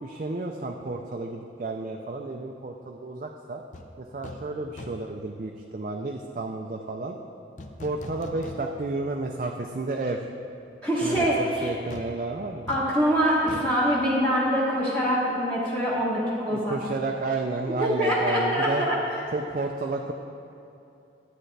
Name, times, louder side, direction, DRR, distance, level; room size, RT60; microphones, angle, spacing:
voice 1, 0.0-3.6 4.0-7.2 7.8-10.2 11.0-12.7 16.5-18.8 19.3-20.1, right 3 dB, 45° right, 2 dB, 0.4 m, -31 dB
sound 1, 3.7-3.9 4.2-4.5 4.8-5.2 7.6-9.0 9.4-9.5 11.1-14.8 15.1-15.2, left 2 dB, 40° left, 0.5 m, -42 dB
voice 2, 10.8-11.7 12.7-16.7 18.0-19.0, equal, 10° left, -9 dB, 1.1 m, -24 dB
12.0 x 8.9 x 3.3 m, 2.7 s
head